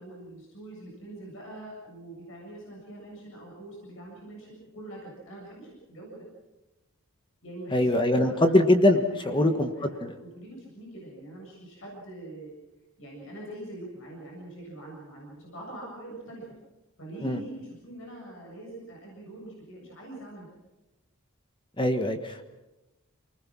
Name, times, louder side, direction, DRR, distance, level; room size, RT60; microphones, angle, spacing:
voice 1, 0.0-6.3 7.4-8.6 9.1-12.5 13.0-16.5 17.0-20.5, right 1 dB, 60° left, -2 dB, 7.4 m, -43 dB
voice 2, 7.7-10.1 17.2-17.4 21.8-22.4, left 1 dB, 20° left, 6 dB, 1.4 m, -23 dB
27.5 x 20.0 x 6.2 m, 1.0 s
head